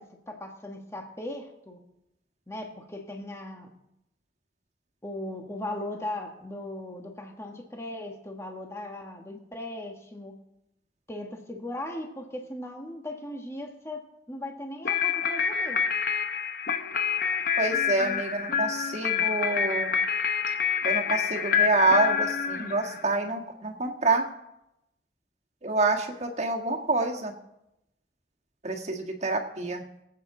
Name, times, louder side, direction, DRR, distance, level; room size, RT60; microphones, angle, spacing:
voice 1, 0.0-1.8 2.5-3.7 5.0-10.3 11.1-14.0 14.3-15.8, left 1 dB, 15° left, 2 dB, 1.5 m, -38 dB
sound 1, 14.8-23.2, left 7 dB, 50° left, 1.0 m, -27 dB
voice 2, 17.6-20.0 20.8-24.3 25.6-27.3 28.6-29.9, right 3 dB, 40° right, 1 dB, 1.7 m, -27 dB
23.5 x 8.4 x 3.8 m, 0.85 s
head